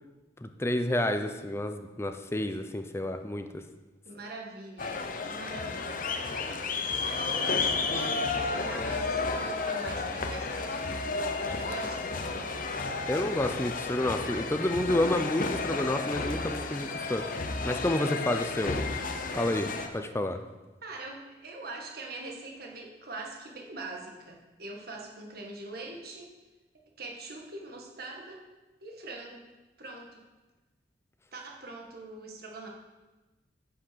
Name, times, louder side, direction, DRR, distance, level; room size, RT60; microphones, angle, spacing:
voice 1, 0.4-3.6 13.1-17.2 17.6-18.8 19.3-20.4, left 1 dB, 15° left, 7 dB, 0.6 m, -29 dB
voice 2, 4.0-6.0 6.9-11.2 11.5-12.6 18.6-18.8 20.8-26.3 27.0-28.4 28.8-29.4 29.8-30.2 31.3-32.7, right 2 dB, 55° right, 1 dB, 1.7 m, -43 dB
sound 1, 4.8-19.9, left 4 dB, 50° left, 0.9 m, -32 dB
10.0 x 6.1 x 6.8 m, 1.2 s
head